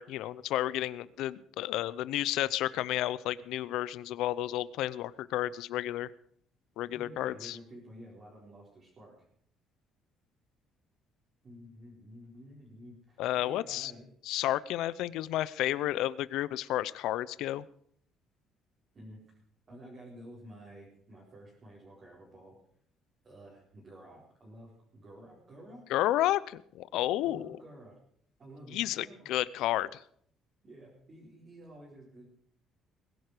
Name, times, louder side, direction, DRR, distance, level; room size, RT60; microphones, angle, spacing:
voice 1, 0.0-6.1 6.8-7.6 13.2-13.9 14.3-17.6 25.9-27.6 28.7-30.0, left 14 dB, 75° left, 19 dB, 0.7 m, -31 dB
voice 2, 6.8-9.3 11.4-14.1 18.9-19.2 19.7-22.5 23.2-25.8 27.2-28.0 28.4-29.3 30.6-32.3, equal, 25° right, -5 dB, 4.6 m, -51 dB
21.0 x 10.5 x 5.0 m, 0.64 s
cardioid pair, 170°, 0 cm